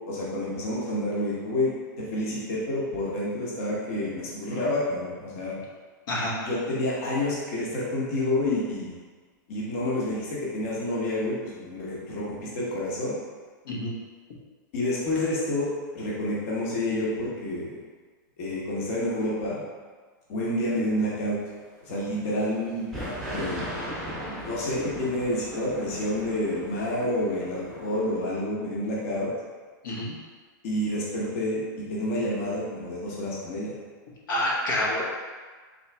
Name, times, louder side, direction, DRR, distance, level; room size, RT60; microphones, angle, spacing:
voice 1, 0.1-5.5 6.4-8.9 9.5-13.2 14.7-17.8 18.4-19.6 20.3-21.4 21.8-22.9 23.3-23.7 24.4-29.3 30.6-33.8, left 1 dB, 45° left, -6 dB, 0.9 m, -29 dB
sound 1, 22.9-28.2, equal, ahead, 0.8 m, -37 dB
voice 2, 34.3-35.0, left 1 dB, 90° left, -5 dB, 1.2 m, -27 dB
3.8 x 2.9 x 3.4 m, 1.5 s
supercardioid pair, 170°, 11 cm